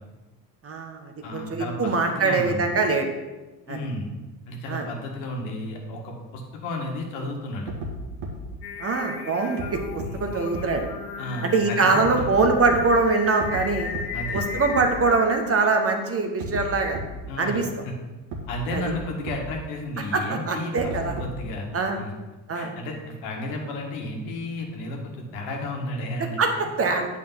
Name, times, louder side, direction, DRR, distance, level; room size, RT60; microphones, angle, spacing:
voice 1, 0.6-3.1 3.7-3.8 4.7-4.9 8.8-10.9 11.4-13.9 14.3-17.0 17.4-17.7 18.7-18.8 20.1-21.1 21.7-22.0 22.5-22.7 26.4-27.1, right 3 dB, 30° right, 4 dB, 1.3 m, -23 dB
voice 2, 1.2-2.7 3.7-4.1 4.5-7.7 10.0-10.1 11.2-12.3 14.1-14.4 17.3-17.7 18.5-22.1 22.5-26.4, left 1 dB, 65° left, 1 dB, 1.8 m, -33 dB
sound 1, 7.7-7.9 8.2-8.3 9.6-9.7 10.0-10.1 10.5-10.6 12.0-12.8 13.4-13.6 13.9-14.0 14.4-14.5 14.8-14.9 16.4-16.6 16.9-17.0 18.3-18.4 18.7-18.8 19.3-19.4 20.8-21.5, right 2 dB, 60° right, 1.8 m, -32 dB
Singing, 8.6-16.2, left 5 dB, 85° left, 1.0 m, -36 dB
9.1 x 4.7 x 5.8 m, 1.2 s
hypercardioid pair, 65°, 47 cm